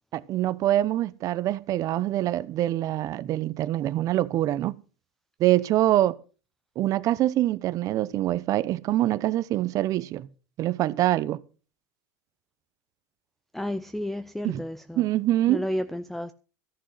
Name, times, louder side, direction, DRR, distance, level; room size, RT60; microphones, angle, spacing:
voice 1, 0.1-4.7 5.4-6.2 6.8-10.3 10.6-11.4 14.4-14.6 15.0-15.6, right 14 dB, 45° right, 0.8 m, -24 dB
voice 2, 13.5-15.0 15.5-16.3, left 1 dB, 5° left, 0.5 m, -31 dB
14.0 x 6.3 x 7.7 m
supercardioid pair, 125°, 8 cm